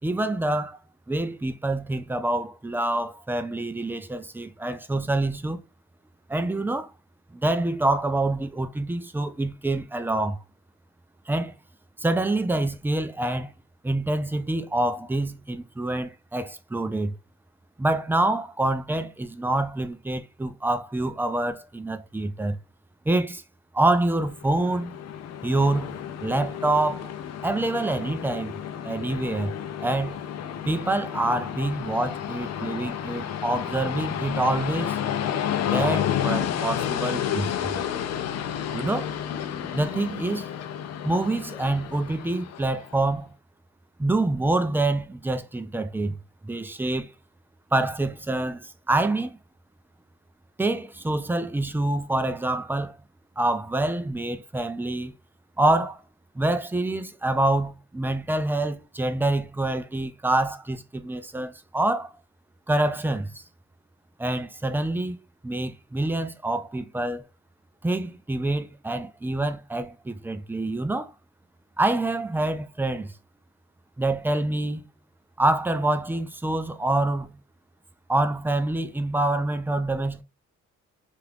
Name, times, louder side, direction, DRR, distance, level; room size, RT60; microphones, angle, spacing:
voice 1, 0.0-0.8 1.1-5.6 6.3-6.9 7.3-10.4 11.3-11.5 12.0-13.5 13.8-17.2 17.8-22.6 23.1-23.4 23.7-25.0 25.4-27.1 27.4-29.5 29.8-30.2 30.7-35.0 35.6-37.8 38.7-39.1 39.7-40.4 41.0-43.3 44.0-46.2 46.4-47.1 47.7-49.4 50.6-53.0 53.4-55.1 55.6-56.0 56.3-62.1 62.7-63.4 64.2-65.2 65.4-67.2 67.8-71.1 71.8-73.1 74.0-74.9 75.4-77.4 78.1-80.2, right 2 dB, 5° right, 0.3 m, -26 dB
Train, 24.3-42.9, left 9 dB, 60° left, 0.5 m, -31 dB
2.8 x 2.5 x 3.2 m
cardioid pair, 90°, 30 cm